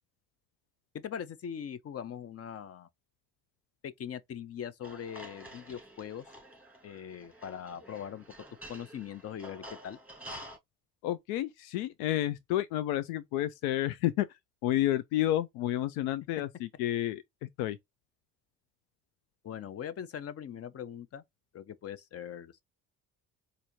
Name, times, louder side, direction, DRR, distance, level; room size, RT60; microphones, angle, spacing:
voice 1, 0.9-2.9 3.8-6.3 6.8-8.2 8.7-10.0 19.4-21.2 21.5-22.6, left 8 dB, 40° left, 0.6 m, -41 dB
sound 1, 4.8-10.6, equal, 5° right, 1.7 m, -49 dB
voice 2, 11.0-14.3 14.6-17.8, left 13 dB, 90° left, 0.5 m, -30 dB
4.3 x 2.7 x 2.9 m
supercardioid pair, 80°, 37 cm